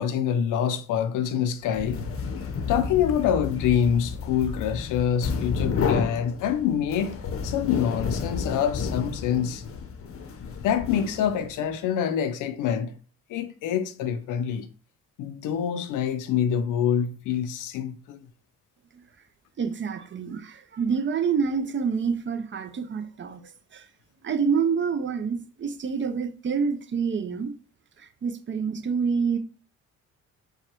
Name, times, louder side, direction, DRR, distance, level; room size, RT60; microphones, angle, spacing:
voice 1, 0.0-2.0 2.7-7.2 7.4-9.6 10.6-13.0 13.3-14.7 15.2-18.3, left 8 dB, 90° left, 0.6 m, -26 dB
sound 1, 1.6-11.6, left 5 dB, 45° left, 0.7 m, -31 dB
voice 2, 19.6-23.4 23.7-23.8 24.2-27.5 28.2-29.4, right 6 dB, 40° right, 0.6 m, -27 dB
4.7 x 2.3 x 4.4 m
cardioid pair, 90°, 30 cm